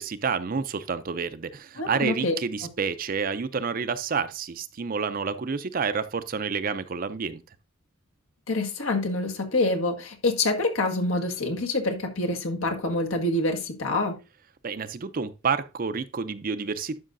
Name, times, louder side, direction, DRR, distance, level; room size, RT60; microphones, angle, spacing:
voice 1, 0.0-7.4 14.6-17.0, right 5 dB, 40° right, 0.5 m, -29 dB
voice 2, 1.8-2.4 8.5-14.2, left 2 dB, 75° left, 1.5 m, -26 dB
11.5 x 5.6 x 2.6 m
head